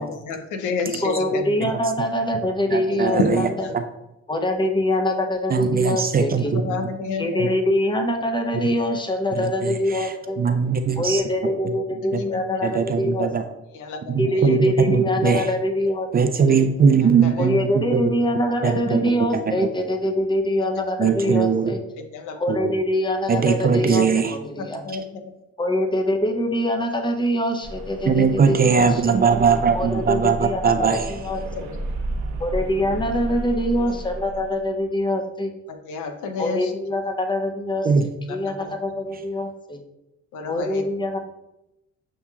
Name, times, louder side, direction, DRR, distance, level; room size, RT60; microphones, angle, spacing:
voice 1, 0.0-1.4 3.1-3.7 6.5-7.6 12.2-12.6 13.7-14.5 17.2-17.5 22.1-22.4 24.6-25.3 35.7-36.7 38.3-38.7 40.3-40.8, left 4 dB, 85° left, 7 dB, 0.6 m, -30 dB
voice 2, 0.8-3.7 4.3-6.6 7.2-10.4 11.0-13.3 14.2-16.1 16.5-16.6 17.4-21.8 22.4-24.1 24.4-24.8 25.6-29.2 29.7-30.9 31.2-31.7 32.4-35.5 36.4-37.9 38.3-39.8 40.5-41.2, left 1 dB, 15° left, 4 dB, 0.6 m, -24 dB
voice 3, 2.7-3.5 3.7-3.8 5.5-6.6 7.4-7.5 9.3-11.2 12.1-12.2 12.6-13.4 14.1-15.5 16.1-18.0 18.6-19.7 21.0-21.7 22.5-22.7 23.3-24.4 28.0-31.2 37.8-38.1, right 6 dB, 30° right, 8 dB, 0.4 m, -20 dB
sound 1, 27.6-34.9, right 1 dB, 90° right, 0.8 m, -33 dB
7.1 x 2.8 x 2.3 m, 0.90 s
cardioid pair, 90°, 30 cm